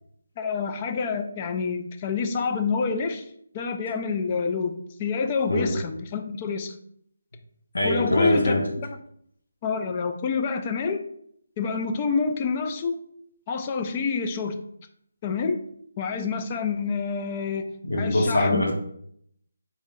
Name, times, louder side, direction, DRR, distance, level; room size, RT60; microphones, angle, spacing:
voice 1, 0.4-3.2 3.5-6.7 7.8-8.5 9.6-11.0 11.6-13.0 13.5-14.6 15.2-15.6 16.0-18.7, left 5 dB, 25° left, 6 dB, 0.3 m, -27 dB
voice 2, 7.7-8.7 17.8-18.7, left 1 dB, 85° left, 0 dB, 1.0 m, -23 dB
3.0 x 2.7 x 3.7 m, 0.69 s
figure-of-eight pair, 165°, 0 cm